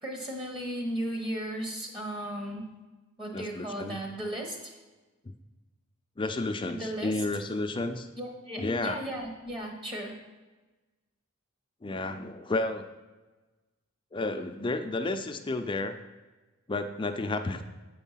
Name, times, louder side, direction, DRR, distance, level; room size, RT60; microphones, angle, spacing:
voice 1, 0.0-2.6 3.2-4.8 6.7-7.2 8.2-10.1, right 1 dB, 25° right, 1 dB, 1.1 m, -35 dB
voice 2, 3.3-4.0 5.2-5.3 6.2-8.1 8.6-9.0 11.8-12.8 14.1-16.0 16.7-17.6, left 2 dB, 25° left, 7 dB, 0.5 m, -31 dB
7.8 x 4.5 x 5.6 m, 1.2 s
head